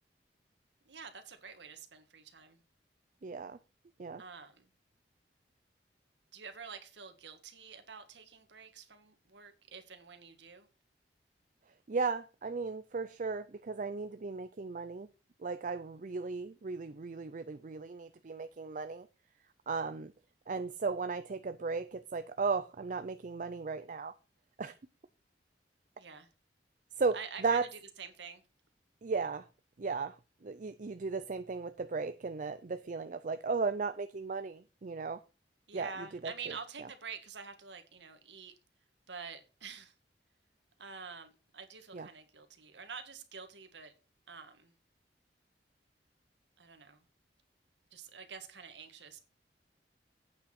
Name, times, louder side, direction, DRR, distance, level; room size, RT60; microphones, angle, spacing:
voice 1, 0.8-2.6 4.2-4.7 6.3-10.7 26.0-26.3 27.1-28.4 35.7-38.5 39.1-39.9 40.8-43.9 44.3-44.7 46.6-47.0 47.9-49.3, right 5 dB, 80° right, 1.7 m, -47 dB
voice 2, 3.2-3.6 4.0-4.2 11.9-15.1 15.4-19.1 19.7-20.1 20.5-24.1 24.6-24.7 27.0-27.2 27.4-27.6 29.0-29.5 29.8-30.2 30.4-35.2 35.7-35.9 36.2-36.5 41.9-42.1, right 4 dB, 45° right, 0.5 m, -35 dB
8.6 x 6.3 x 5.9 m
head